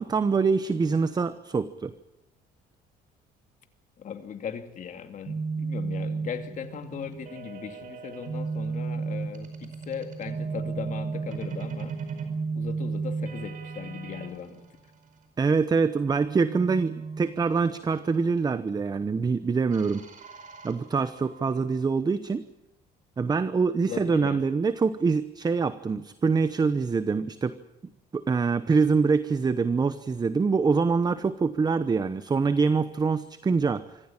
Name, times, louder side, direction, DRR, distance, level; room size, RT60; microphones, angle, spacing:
voice 1, 0.0-1.9 15.4-20.0 20.6-22.4 23.2-27.6 28.1-34.0, right 4 dB, 25° right, 13 dB, 0.9 m, -25 dB
voice 2, 4.0-12.0 12.5-14.6 23.9-24.4, left 7 dB, 50° left, 7 dB, 2.6 m, -38 dB
sound 1, 5.3-14.3 16.3-18.2 19.7-21.6, right 4 dB, 50° right, 5.0 m, -34 dB
25.5 x 15.0 x 8.9 m, 0.94 s
cardioid pair, 110°, 17 cm